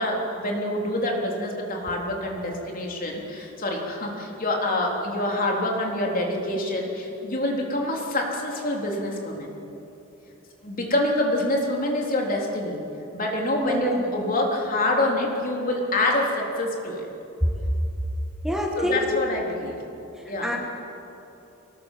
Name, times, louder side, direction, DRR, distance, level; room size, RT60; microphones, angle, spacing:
voice 1, 0.0-9.5 10.6-12.8 13.1-17.1 18.8-19.8 20.3-20.6, left 1 dB, 45° left, -1 dB, 3.7 m, -26 dB
voice 2, 13.6-14.0 18.4-19.0 20.4-20.6, equal, 5° right, 0 dB, 1.8 m, -26 dB
24.0 x 19.5 x 7.6 m, 3.0 s
head